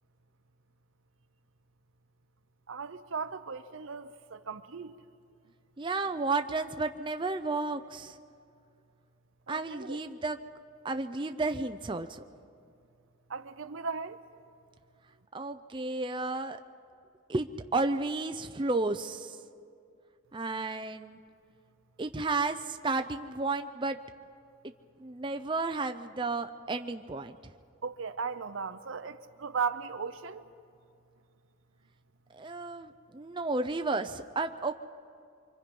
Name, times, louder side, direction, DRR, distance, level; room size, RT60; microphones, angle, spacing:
voice 1, 2.7-4.9 9.5-10.0 13.3-14.2 27.8-30.5, right 5 dB, 70° right, 0.7 m, -37 dB
voice 2, 5.8-8.2 9.5-10.4 10.8-12.2 15.3-16.6 17.3-19.4 20.3-21.2 22.0-24.0 25.0-27.4 32.3-34.7, right 3 dB, 25° right, 0.5 m, -32 dB
26.0 x 25.0 x 5.3 m
head